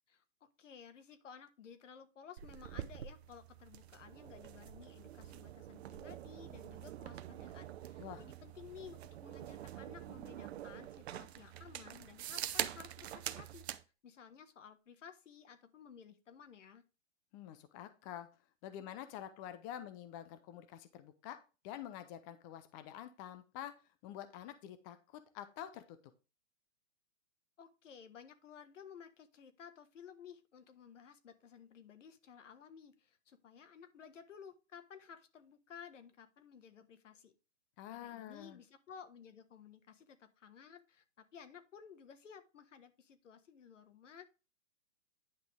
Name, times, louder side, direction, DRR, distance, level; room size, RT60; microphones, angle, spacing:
voice 1, 0.1-13.7 14.0-16.8 27.6-37.3 37.9-44.2, left 7 dB, 75° left, 10 dB, 1.5 m, -55 dB
sound 1, 2.4-13.8, right 12 dB, 55° right, 0.8 m, -45 dB
voice 2, 17.3-18.3 18.6-21.4 21.6-23.7 24.0-26.0 37.8-38.6, left 11 dB, 15° left, 11 dB, 0.4 m, -47 dB
9.8 x 5.9 x 3.4 m, 0.31 s
hypercardioid pair, 135°, 38 cm